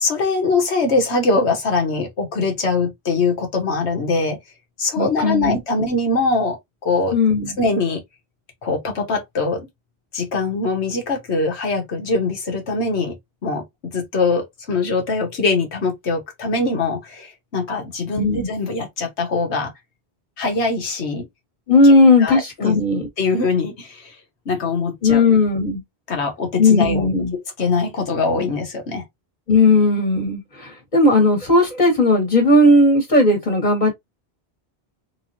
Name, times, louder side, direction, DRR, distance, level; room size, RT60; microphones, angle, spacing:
voice 1, 0.0-4.4 4.8-6.6 6.8-7.1 7.6-8.0 8.6-9.7 10.1-13.2 13.4-19.7 20.4-21.3 21.8-21.9 22.2-22.8 23.2-24.2 24.4-25.4 26.1-27.1 27.3-29.0, left 3 dB, 90° left, 1.5 m, -22 dB
voice 2, 5.0-5.6 7.1-7.6 18.1-18.5 21.7-23.1 25.0-25.8 26.6-27.3 29.5-33.9, left 2 dB, 40° left, 1.4 m, -16 dB
3.6 x 3.2 x 2.7 m
omnidirectional pair, 1.1 m